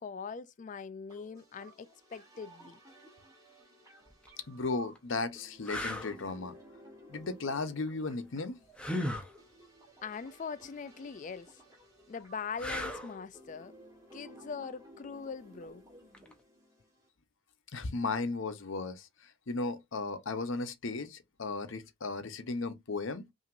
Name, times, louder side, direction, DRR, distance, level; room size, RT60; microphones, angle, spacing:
voice 1, 0.0-2.8 10.0-11.6 12.1-13.7 14.1-15.8, left 5 dB, 35° left, 0.3 m, -42 dB
sound 1, 1.1-17.1, equal, 15° right, 1.4 m, -56 dB
sound 2, 4.1-4.3 4.9-5.0 5.6-6.1 8.8-9.3 12.6-13.2 16.1-16.3, left 1 dB, 5° left, 0.6 m, -35 dB
voice 2, 4.5-6.5 7.1-8.6 17.7-23.3, left 3 dB, 65° left, 0.8 m, -35 dB
5.7 x 2.8 x 2.5 m
head